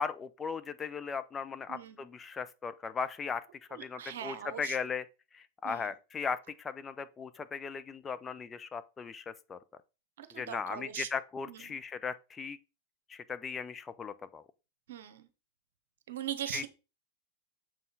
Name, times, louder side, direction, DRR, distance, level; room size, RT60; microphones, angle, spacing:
voice 1, 0.0-3.4 3.7-5.0 5.3-9.6 10.3-12.6 13.1-14.4 16.5-16.7, left 5 dB, 20° left, 0.7 m, -37 dB
voice 2, 1.7-2.0 3.7-4.8 5.6-5.9 10.2-11.1 11.5-11.8 14.9-15.3 16.1-16.7, right 10 dB, 60° right, 1.1 m, -41 dB
7.4 x 5.6 x 4.0 m
figure-of-eight pair, 90°, 0 cm